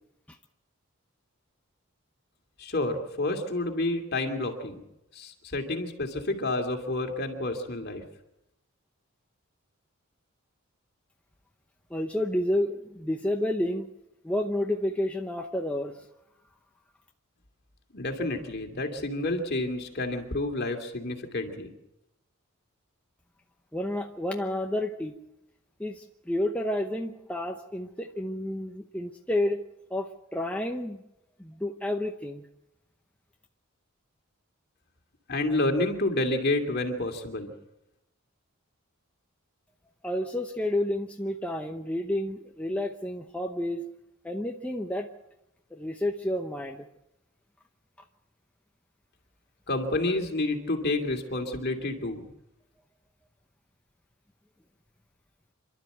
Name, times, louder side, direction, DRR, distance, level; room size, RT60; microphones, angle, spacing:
voice 1, 2.6-4.8 5.1-8.0 17.9-21.7 35.3-37.5 49.7-52.3, left 2 dB, 45° left, 3 dB, 2.6 m, -29 dB
voice 2, 11.9-13.9 14.2-16.1 23.7-25.1 25.8-29.6 29.9-31.0 31.4-32.5 40.0-43.8 44.2-45.1 45.7-46.9, left 1 dB, 5° left, 2 dB, 0.8 m, -30 dB
28.0 x 12.5 x 8.0 m, 0.90 s
head